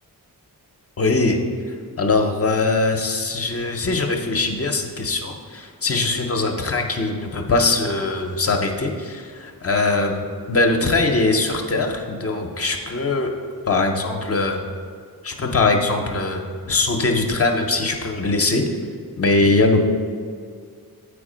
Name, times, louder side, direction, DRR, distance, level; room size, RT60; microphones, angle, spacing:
voice 1, 1.0-1.4 2.0-13.3 13.7-14.6 15.2-16.4 16.7-18.6 19.2-19.8, left 3 dB, 40° left, 3 dB, 0.6 m, -21 dB
8.0 x 4.8 x 5.0 m, 2.1 s
wide cardioid pair, 170°, 36 cm